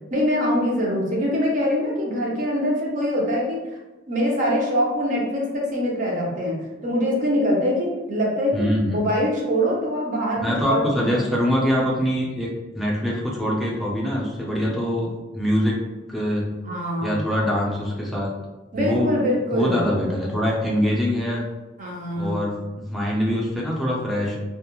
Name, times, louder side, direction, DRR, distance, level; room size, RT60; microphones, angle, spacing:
voice 1, 0.1-3.6 4.1-6.6 6.8-11.2 16.6-17.2 18.7-19.9 21.8-22.4, equal, 45° right, -3 dB, 0.6 m, -23 dB
voice 2, 8.5-9.0 10.4-12.5 12.7-15.1 15.3-15.8 16.1-16.4 17.0-18.3 18.7-19.1 19.5-21.4 22.2-24.4, equal, ahead, -5 dB, 0.5 m, -23 dB
2.3 x 2.0 x 2.9 m, 1.1 s
head